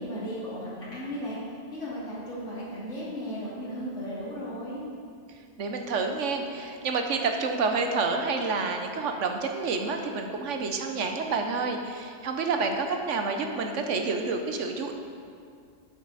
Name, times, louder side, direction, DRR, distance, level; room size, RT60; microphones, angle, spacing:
voice 1, 0.0-1.4 1.7-4.8, equal, 80° left, -8 dB, 3.2 m, -35 dB
voice 2, 5.6-14.9, right 4 dB, 80° right, 4 dB, 1.2 m, -29 dB
10.0 x 7.6 x 4.1 m, 2.2 s
omnidirectional pair, 1.2 m